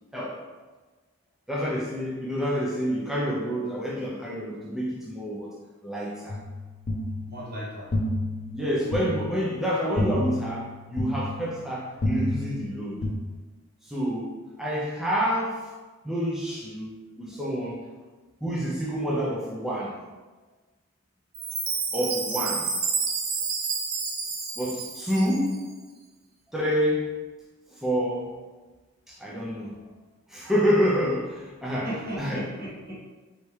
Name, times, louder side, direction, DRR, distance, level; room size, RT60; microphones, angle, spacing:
voice 1, 1.5-5.5 5.8-6.4 8.5-13.0 13.8-15.7 16.0-17.9 18.4-20.0 21.9-22.7 24.6-25.6 26.5-27.1 27.7-28.3 29.1-29.8 30.3-31.9 32.2-32.4, equal, ahead, -5 dB, 0.5 m, -28 dB
sound 1, 6.3-13.1, left 1 dB, 45° left, 0.6 m, -31 dB
voice 2, 7.2-7.9 31.8-33.0, right 1 dB, 50° right, -4 dB, 1.1 m, -36 dB
Chime, 21.3-25.6, right 4 dB, 85° right, 0.7 m, -30 dB
4.1 x 3.4 x 3.1 m, 1.3 s
head